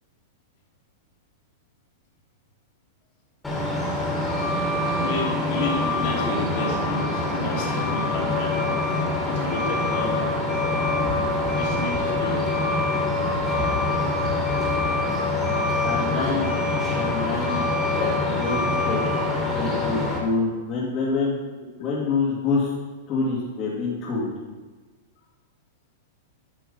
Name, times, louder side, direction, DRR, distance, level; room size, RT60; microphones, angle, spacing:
Truck, 3.4-20.2, left 2 dB, 10° left, 2.5 m, -24 dB
voice 1, 5.0-8.5 9.3-10.2 11.5-12.5 19.3-19.4 19.7-19.8, left 2 dB, 60° left, -3 dB, 3.2 m, -31 dB
voice 2, 15.9-16.5 16.9-17.7 18.0-19.0 19.4-21.4 21.8-22.7 23.1-24.3, left 4 dB, 35° left, -6 dB, 2.3 m, -26 dB
10.5 x 6.1 x 5.4 m, 1.3 s
hypercardioid pair, 140°, 0 cm